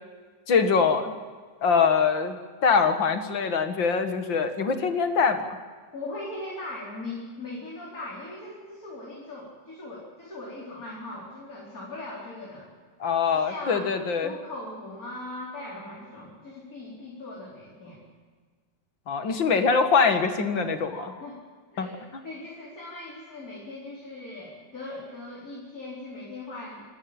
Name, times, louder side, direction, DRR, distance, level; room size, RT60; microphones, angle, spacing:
voice 1, 0.5-1.1 1.6-2.4 2.6-5.6 13.0-14.3 19.1-21.1 21.8-21.9, left 5 dB, 80° left, 7 dB, 2.5 m, -23 dB
voice 2, 5.9-12.7 13.3-13.9 14.2-18.0 20.9-21.4 21.7-26.8, left 2 dB, 45° left, -5 dB, 4.8 m, -39 dB
26.5 x 13.5 x 8.8 m, 1.5 s
omnidirectional pair, 2.0 m